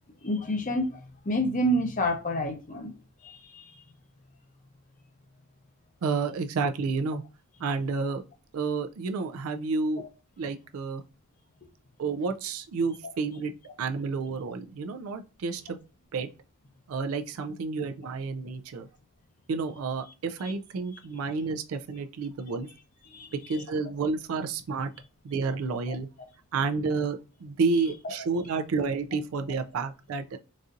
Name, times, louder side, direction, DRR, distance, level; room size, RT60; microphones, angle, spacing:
voice 1, 0.2-2.9 3.2-3.8 10.0-10.1 13.0-13.1 23.1-23.3 25.9-26.0 28.0-28.1, equal, 40° left, 0.7 m, -29 dB
voice 2, 6.0-7.2 7.6-8.2 8.5-10.1 10.4-11.0 12.0-13.5 13.8-15.8 16.1-16.3 16.9-18.9 19.5-22.7 23.3-24.9 25.2-26.1 26.5-30.4, right 4 dB, 85° right, 0.4 m, -30 dB
4.0 x 2.5 x 2.4 m
head